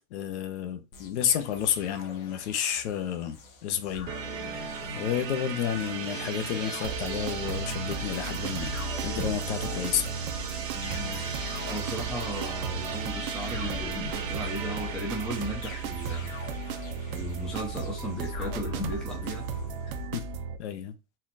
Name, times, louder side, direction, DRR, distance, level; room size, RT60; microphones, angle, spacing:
voice 1, 0.1-8.7 9.0-10.1 20.1-20.2 20.6-20.9, left 9 dB, 55° left, 0.9 m, -31 dB
sound 1, 0.9-20.1, left 4 dB, 75° left, 1.6 m, -44 dB
sound 2, 4.1-17.8, right 5 dB, 70° right, 1.3 m, -37 dB
sound 3, 6.8-20.6, right 5 dB, 40° right, 0.6 m, -36 dB
voice 2, 10.7-11.2 11.7-16.4 17.1-19.4, equal, ahead, 0.6 m, -36 dB
4.3 x 2.4 x 4.0 m
supercardioid pair, 160°, 41 cm